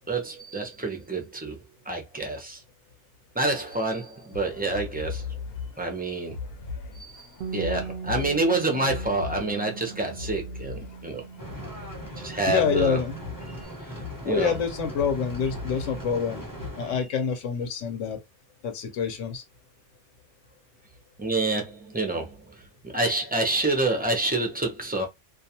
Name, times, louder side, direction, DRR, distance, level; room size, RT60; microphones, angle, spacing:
voice 1, 0.1-1.6 1.9-2.6 3.4-5.2 5.8-6.4 7.0-7.2 7.5-11.2 12.2-13.0 14.2-14.5 21.2-22.3 22.8-25.1, right 2 dB, 15° right, 0.3 m, -27 dB
sound 1, 4.3-16.7, left 5 dB, 65° left, 0.7 m, -39 dB
Bass guitar, 7.4-13.7, right 5 dB, 60° right, 0.7 m, -40 dB
sound 2, 11.4-17.0, right 1 dB, 20° left, 0.8 m, -40 dB
voice 2, 12.5-13.2 14.2-16.5 16.8-18.2 18.6-19.4, left 6 dB, 90° left, 1.0 m, -27 dB
2.3 x 2.3 x 2.7 m
omnidirectional pair, 1.2 m